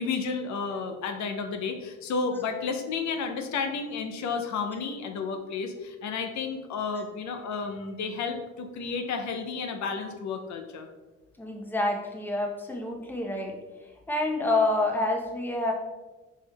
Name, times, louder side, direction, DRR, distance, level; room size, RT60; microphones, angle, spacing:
voice 1, 0.0-10.9, left 5 dB, 70° left, 5 dB, 0.5 m, -32 dB
voice 2, 11.4-13.6 14.1-15.7, left 2 dB, 5° left, 1 dB, 0.7 m, -27 dB
4.5 x 4.3 x 2.2 m, 1.2 s
cardioid pair, 90°, 30 cm